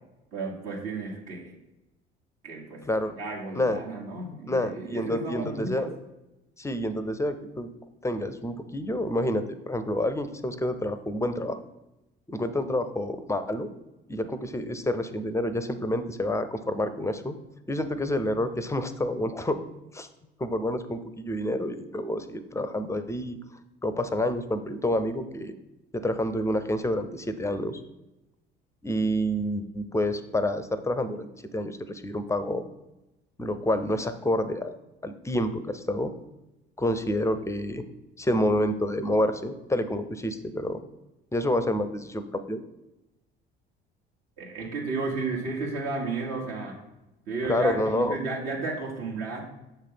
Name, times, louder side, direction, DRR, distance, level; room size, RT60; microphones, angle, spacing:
voice 1, 0.3-1.5 2.4-2.8 3.2-5.9 44.4-46.7 47.3-49.4, right 3 dB, 60° right, -3 dB, 1.4 m, -33 dB
voice 2, 4.5-5.9 6.6-7.7 8.0-11.6 12.3-13.7 14.1-17.3 17.7-19.6 19.9-20.1 20.4-23.4 23.8-25.5 25.9-27.8 28.8-31.3 31.5-32.7 33.4-34.8 35.0-36.1 36.8-37.8 38.2-40.8 41.3-42.6 47.5-48.2, left 1 dB, 10° left, 11 dB, 0.5 m, -28 dB
6.7 x 3.3 x 5.6 m, 0.96 s
figure-of-eight pair, 55°, 29 cm